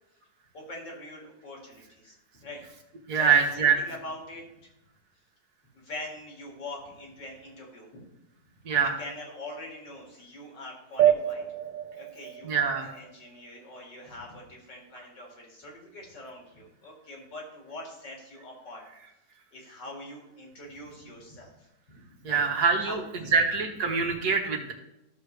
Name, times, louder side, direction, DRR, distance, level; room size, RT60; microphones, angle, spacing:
voice 1, 0.5-2.6 3.1-3.3 3.6-4.4 5.7-8.0 9.0-11.4 11.9-18.8 19.5-22.4 22.8-23.3, left 1 dB, 75° left, -1 dB, 3.0 m, -43 dB
voice 2, 3.1-3.8 8.6-9.0 12.4-12.9 22.2-23.0 23.3-24.7, right 6 dB, 65° right, 3 dB, 1.6 m, -24 dB
sound 1, 11.0-13.9, right 11 dB, 80° right, 1.3 m, -28 dB
13.5 x 6.6 x 3.3 m, 0.89 s
omnidirectional pair, 1.9 m